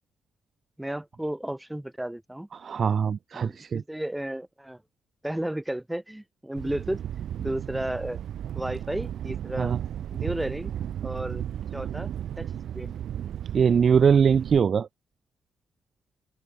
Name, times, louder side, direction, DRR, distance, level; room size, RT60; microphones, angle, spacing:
voice 1, 0.8-2.5 3.3-4.8 5.2-7.0 7.4-8.2 8.5-9.7 10.1-10.7 11.0-11.4 11.7-12.1 12.4-13.0, right 1 dB, 5° right, 5.0 m, -33 dB
voice 2, 2.5-3.8 9.6-9.8 13.5-14.9, right 7 dB, 35° right, 0.6 m, -22 dB
Thunder, 6.5-14.6, right 10 dB, 60° right, 3.0 m, -34 dB
cardioid pair, 175°, 0 cm